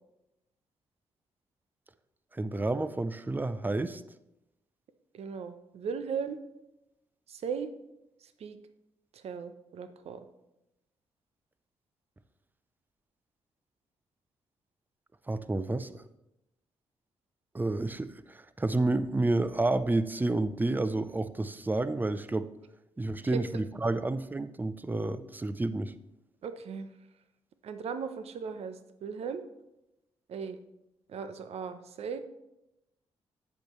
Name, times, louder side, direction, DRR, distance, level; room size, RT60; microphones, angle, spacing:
voice 1, 2.3-4.0 15.3-16.0 17.5-22.5 23.0-25.9, right 2 dB, 15° right, 14 dB, 0.5 m, -30 dB
voice 2, 5.1-6.4 7.3-7.7 8.2-8.6 9.1-10.3 23.3-23.4 26.4-26.9 27.6-29.4 30.3-30.6 31.1-32.2, right 6 dB, 70° right, 10 dB, 0.7 m, -37 dB
8.7 x 7.9 x 3.1 m, 0.90 s
supercardioid pair, 60°, 11 cm